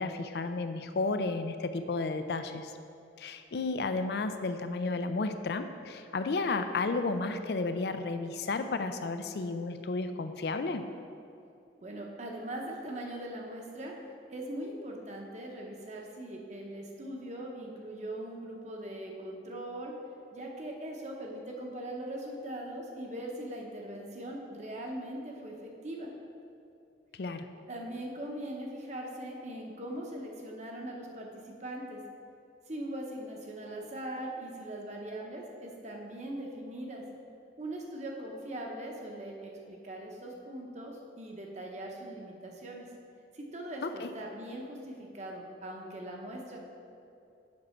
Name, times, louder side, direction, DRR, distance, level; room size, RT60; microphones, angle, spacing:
voice 1, 0.0-2.7 3.2-10.8 27.1-27.5 43.8-44.1, left 3 dB, 60° left, 9 dB, 0.4 m, -32 dB
voice 2, 11.8-13.9 14.3-19.9 20.3-26.1 27.7-32.0 32.7-37.0 37.6-42.9 43.3-46.6, right 1 dB, 40° right, 0 dB, 0.9 m, -40 dB
7.4 x 6.1 x 4.4 m, 2.6 s
head